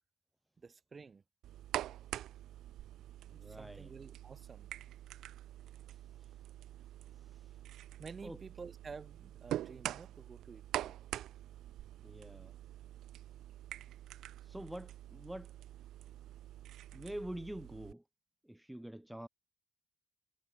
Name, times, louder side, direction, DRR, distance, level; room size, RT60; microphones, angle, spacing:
voice 1, 0.6-1.2 3.3-4.7 8.0-11.0, right 5 dB, 35° right, 4.6 m, -51 dB
sound 1, 1.4-17.9, right 13 dB, 80° right, 1.0 m, -45 dB
voice 2, 3.3-3.9 5.9-6.4 7.1-7.6 8.2-8.4 12.0-12.5 14.4-15.5 16.9-18.0 18.4-19.3, right 1 dB, 5° right, 0.8 m, -46 dB
cardioid pair, 90°, 0 cm